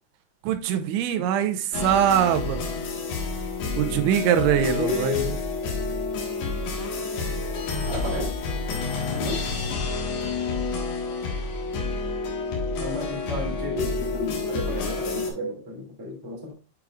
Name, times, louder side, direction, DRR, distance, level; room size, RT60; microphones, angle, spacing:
voice 1, 0.4-2.6 3.8-5.3, right 10 dB, 90° right, 3.0 m, -23 dB
sound 1, 1.7-15.3, left 3 dB, 70° left, 3.4 m, -29 dB
voice 2, 4.5-5.4 7.9-8.3 9.1-9.4 12.8-16.5, left 3 dB, 20° right, 0.6 m, -31 dB
9.0 x 4.8 x 2.3 m
omnidirectional pair, 5.4 m